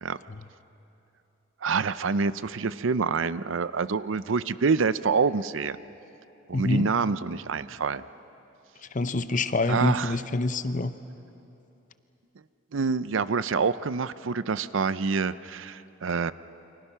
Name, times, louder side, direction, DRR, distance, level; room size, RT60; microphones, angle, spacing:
voice 1, 1.6-5.8 6.5-8.0 9.7-10.2 12.7-16.3, right 5 dB, 70° right, 15 dB, 0.6 m, -26 dB
voice 2, 6.5-6.9 8.9-10.9, left 2 dB, 40° left, 11 dB, 0.8 m, -26 dB
29.5 x 24.5 x 5.7 m, 2.9 s
head